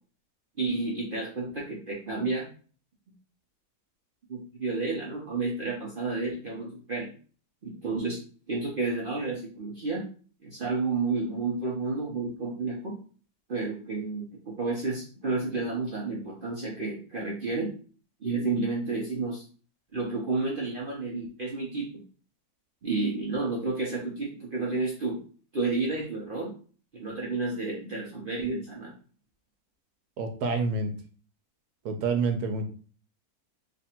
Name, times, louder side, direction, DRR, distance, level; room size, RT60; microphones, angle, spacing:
voice 1, 0.6-2.5 4.3-7.1 7.6-8.2 8.5-10.0 10.4-12.9 13.5-17.7 18.2-19.4 19.9-21.9 22.8-25.2 25.5-26.5 26.9-28.9, right 3 dB, 45° right, -4 dB, 0.8 m, -31 dB
voice 2, 30.2-30.9 31.8-32.7, right 4 dB, 85° right, 5 dB, 1.3 m, -27 dB
3.3 x 2.6 x 4.3 m, 0.41 s
omnidirectional pair, 1.7 m